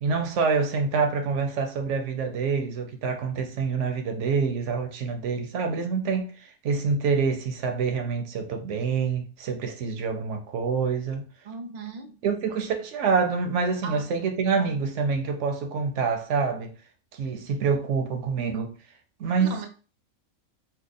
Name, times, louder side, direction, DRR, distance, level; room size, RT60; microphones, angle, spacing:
voice 1, 0.0-6.3 6.6-11.3 12.2-16.7 17.1-18.7 19.2-19.5, right 5 dB, 65° right, 0.8 m, -26 dB
voice 2, 11.4-12.2 13.8-14.1 14.6-14.7 19.4-19.7, right 5 dB, 85° right, 0.4 m, -37 dB
2.9 x 2.1 x 3.8 m
omnidirectional pair, 1.5 m